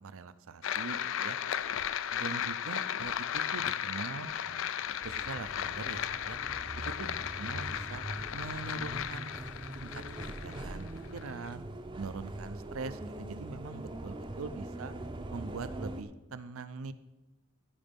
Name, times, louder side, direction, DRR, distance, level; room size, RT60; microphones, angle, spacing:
voice 1, 0.0-1.4 2.1-4.7 5.0-6.4 7.0-7.1 7.4-8.0 8.3-9.3 9.7-11.6 11.9-14.9 15.3-16.9, right 4 dB, 80° right, 13 dB, 0.6 m, -42 dB
sound 1, 0.6-11.5, left 9 dB, 65° left, 0.4 m, -35 dB
sound 2, 5.0-16.0, right 1 dB, 25° right, 0.6 m, -42 dB
15.0 x 5.2 x 5.3 m, 1.0 s
head